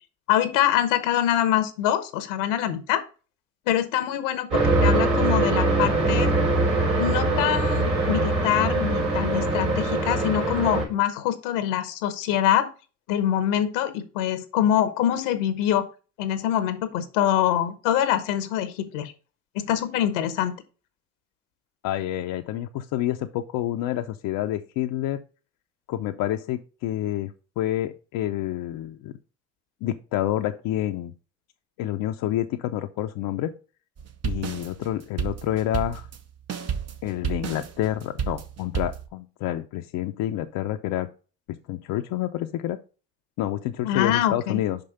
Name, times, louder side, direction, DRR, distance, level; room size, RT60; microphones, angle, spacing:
voice 1, 0.3-3.0 3.7-6.4 7.0-12.7 13.1-15.9 16.2-19.1 19.5-20.6 43.8-44.6, left 11 dB, 85° left, 11 dB, 1.0 m, -24 dB
sound 1, 4.5-10.9, right 2 dB, 80° right, 3.3 m, -22 dB
voice 2, 21.8-25.2 25.9-29.1 29.8-31.1 31.8-33.5 34.2-36.1 37.0-41.1 41.7-42.8 43.4-44.8, left 13 dB, 65° left, 5 dB, 0.6 m, -28 dB
sound 2, 34.0-39.1, right 7 dB, 45° right, 0.9 m, -31 dB
5.4 x 5.2 x 5.4 m, 0.35 s
hypercardioid pair, 60°, 36 cm